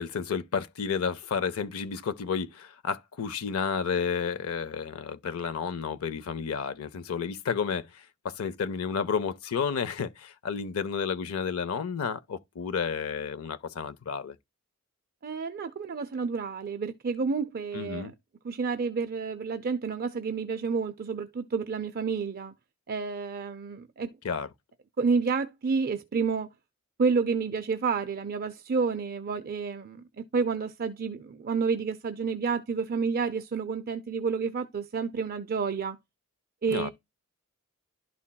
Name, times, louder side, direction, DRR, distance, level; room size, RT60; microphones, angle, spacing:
voice 1, 0.0-14.4 17.7-18.1 24.2-24.5 36.7-36.9, left 6 dB, 70° left, 0.5 m, -31 dB
voice 2, 15.2-18.1 18.4-22.5 22.9-24.1 25.0-26.5 27.0-36.0 36.6-36.9, right 5 dB, 45° right, 0.5 m, -30 dB
12.0 x 4.1 x 2.2 m
head